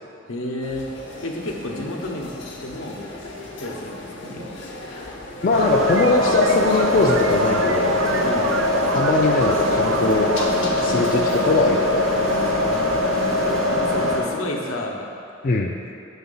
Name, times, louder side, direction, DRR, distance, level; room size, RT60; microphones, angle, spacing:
voice 1, 0.3-0.8 1.2-2.3 2.6-3.0 3.6-4.5 8.2-8.6 12.3-13.0 13.7-15.0, left 1 dB, 85° left, 0 dB, 0.8 m, -31 dB
sound 1, 0.6-13.2, left 2 dB, 60° left, 0.8 m, -37 dB
voice 2, 5.4-8.0 8.9-10.3 10.8-12.1 15.4-15.7, left 3 dB, 40° left, 1 dB, 0.3 m, -21 dB
sound 2, 5.5-14.2, left 1 dB, 85° right, 1.6 m, -22 dB
sound 3, 5.7-11.9, right 4 dB, 60° right, 0.4 m, -31 dB
6.6 x 4.1 x 5.5 m, 2.7 s
head